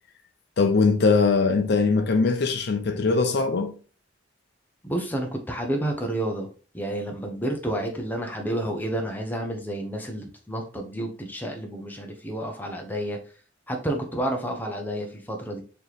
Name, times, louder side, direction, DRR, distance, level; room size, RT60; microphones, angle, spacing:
voice 1, 0.6-3.7, left 4 dB, 60° left, 0.5 m, -21 dB
voice 2, 4.8-6.5 6.7-13.2 13.7-15.6, right 1 dB, 10° left, 0.8 m, -30 dB
4.3 x 3.0 x 3.3 m
head